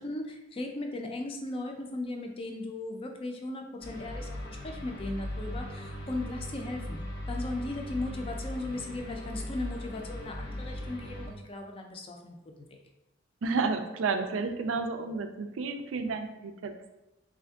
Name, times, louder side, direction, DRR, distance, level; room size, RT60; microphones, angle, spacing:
voice 1, 0.0-12.8, left 2 dB, 30° left, 3 dB, 0.4 m, -37 dB
sound 1, 3.8-11.3, left 1 dB, 70° left, 0.9 m, -38 dB
voice 2, 13.4-16.7, right 4 dB, 90° right, 8 dB, 0.4 m, -31 dB
3.4 x 2.6 x 3.5 m, 0.94 s
head